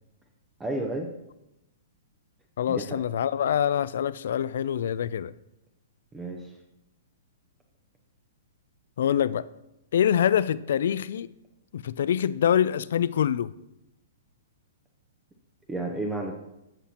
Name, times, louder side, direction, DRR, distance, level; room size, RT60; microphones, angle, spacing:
voice 1, 0.6-1.1 2.7-3.0 6.1-6.5 15.7-16.3, right 2 dB, 10° right, 0.7 m, -31 dB
voice 2, 2.6-5.3 9.0-9.4 9.9-11.3 11.7-13.5, left 9 dB, 70° left, 0.3 m, -25 dB
14.5 x 5.8 x 2.9 m
hypercardioid pair, 145°, 0 cm